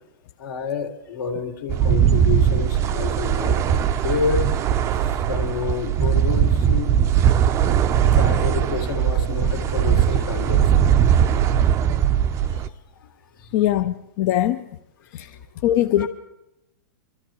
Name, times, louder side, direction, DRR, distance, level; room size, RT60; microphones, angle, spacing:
voice 1, 0.4-4.5 4.9-7.0 8.0-10.9 12.5-13.5 15.2-15.4 16.0-16.1, left 6 dB, 75° left, 3 dB, 2.1 m, -29 dB
sound 1, 1.7-12.7, right 9 dB, 25° right, 0.5 m, -19 dB
voice 2, 13.5-14.7 15.1-16.1, left 12 dB, 45° left, 6 dB, 0.5 m, -22 dB
25.0 x 13.5 x 3.1 m, 0.88 s
hypercardioid pair, 135°, 11 cm